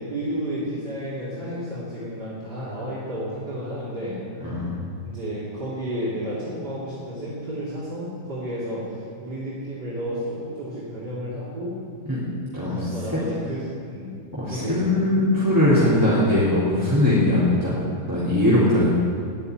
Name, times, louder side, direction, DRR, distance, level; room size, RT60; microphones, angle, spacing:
voice 1, 0.0-4.2 5.0-11.8 12.6-14.1 14.5-15.0, equal, 60° right, -10 dB, 3.8 m, -32 dB
voice 2, 4.4-4.8 12.0-12.2 12.5-13.2 14.3-17.8 18.0-18.9, left 1 dB, 10° right, -11 dB, 3.5 m, -20 dB
18.5 x 7.0 x 9.7 m, 2.3 s
omnidirectional pair, 2.0 m